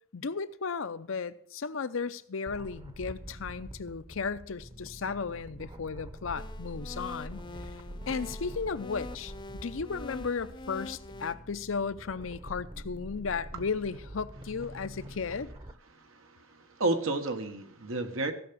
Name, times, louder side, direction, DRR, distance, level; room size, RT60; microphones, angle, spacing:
voice 1, 0.1-7.7 8.1-9.3 9.6-15.5, left 5 dB, 75° left, 0.6 m, -35 dB
sound 1, 2.5-15.7, equal, 25° right, 0.8 m, -45 dB
sound 2, 6.4-11.3, left 3 dB, 25° left, 0.6 m, -45 dB
voice 2, 15.9-18.3, right 2 dB, 80° right, 1.5 m, -32 dB
15.5 x 5.9 x 7.0 m
head